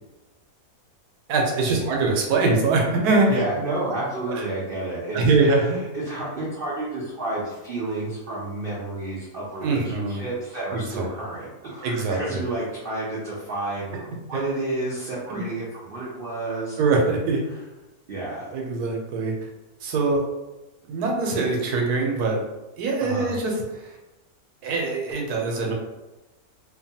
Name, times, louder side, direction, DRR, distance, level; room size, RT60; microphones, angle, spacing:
voice 1, 1.3-3.4 4.3-4.4 5.1-5.8 9.6-10.2 10.7-11.1 11.8-12.4 14.3-14.4 15.3-15.4 16.8-17.5 18.5-19.5 19.8-20.2 20.9-22.4 22.8-23.9 24.6-25.7, right 3 dB, 85° right, 0 dB, 1.1 m, -23 dB
voice 2, 3.3-5.2 5.7-16.8 18.1-18.5 23.0-23.3, right 2 dB, 65° right, -6 dB, 0.5 m, -30 dB
2.8 x 2.3 x 2.7 m, 1.0 s
omnidirectional pair, 1.6 m